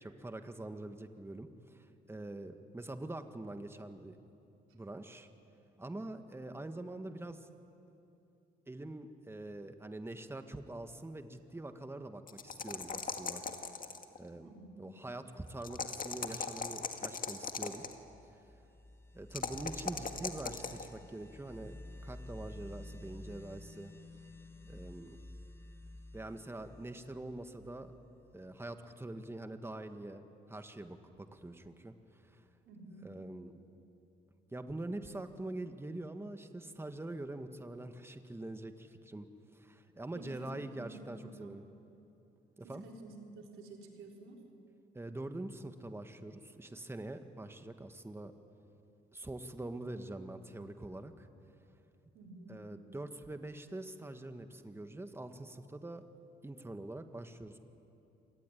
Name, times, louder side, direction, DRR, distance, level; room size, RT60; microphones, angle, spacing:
voice 1, 0.0-4.2 4.7-5.3 5.8-7.5 8.7-13.4 14.2-14.5 14.8-17.8 18.3-18.4 19.1-23.9 24.6-25.2 26.1-27.9 28.3-32.4 33.0-33.6 34.5-39.3 39.5-41.6 42.6-42.8 44.9-48.3 49.1-51.3 52.5-56.0 56.4-57.6, right 2 dB, 10° right, 8 dB, 1.6 m, -44 dB
sound 1, 12.3-14.2 15.6-17.9 19.3-20.9, left 5 dB, 45° left, 2.0 m, -39 dB
voice 2, 14.4-14.8 32.7-33.1 40.1-40.5 40.8-41.5 42.6-44.4 52.1-52.6, right 2 dB, 90° right, 1 dB, 4.0 m, -51 dB
sound 2, 17.7-28.3, left 1 dB, 10° left, 1.3 m, -52 dB
26.5 x 18.5 x 10.0 m, 2.8 s
cardioid pair, 90°, 20 cm